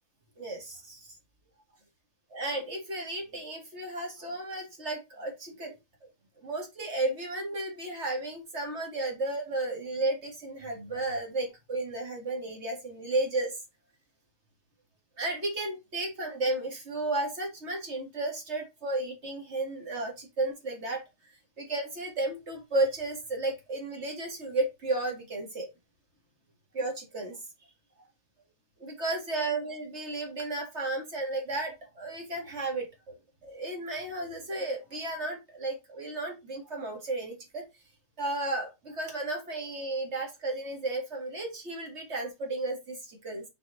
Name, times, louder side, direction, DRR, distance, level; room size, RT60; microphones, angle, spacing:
voice 1, 0.4-1.2 2.3-5.8 6.4-13.6 15.2-21.0 21.6-25.7 26.7-27.4 28.8-33.2 33.4-37.6 38.2-43.4, right 2 dB, 55° right, 2 dB, 2.4 m, -33 dB
6.4 x 4.3 x 4.0 m, 0.23 s
omnidirectional pair, 1.4 m